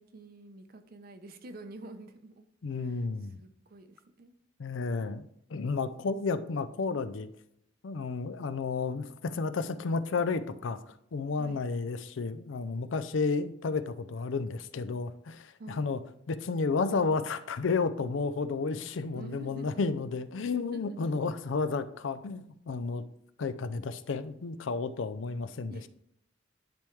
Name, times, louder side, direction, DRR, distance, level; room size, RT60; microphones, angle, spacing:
voice 1, 0.0-2.5 2.8-3.1 3.4-4.3 11.4-11.6 15.6-15.9 18.7-19.9 20.7-21.2 25.7-25.9, right 1 dB, 50° right, 8 dB, 0.6 m, -48 dB
voice 2, 2.6-3.4 4.6-5.2 5.5-7.3 7.8-16.0 16.3-23.0 23.4-25.9, left 4 dB, 80° left, 13 dB, 0.5 m, -32 dB
10.5 x 3.5 x 3.2 m, 0.73 s
head